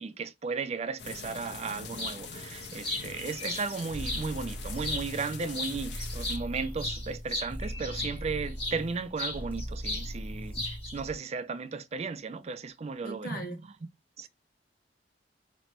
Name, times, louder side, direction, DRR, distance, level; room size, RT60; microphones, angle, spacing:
voice 1, 0.0-13.5 14.2-14.3, right 4 dB, 35° right, 0.4 m, -35 dB
sound 1, 1.0-6.4, left 5 dB, 80° left, 1.1 m, -43 dB
sound 2, 2.0-2.2 2.6-4.3 4.8-5.3 5.5-8.8 9.2-10.1 10.3-11.0, left 2 dB, 35° left, 2.9 m, -36 dB
sound 3, 3.9-11.2, equal, 10° left, 1.3 m, -39 dB
voice 2, 13.0-13.6, right 1 dB, 55° left, 1.8 m, -39 dB
5.3 x 3.1 x 2.9 m
head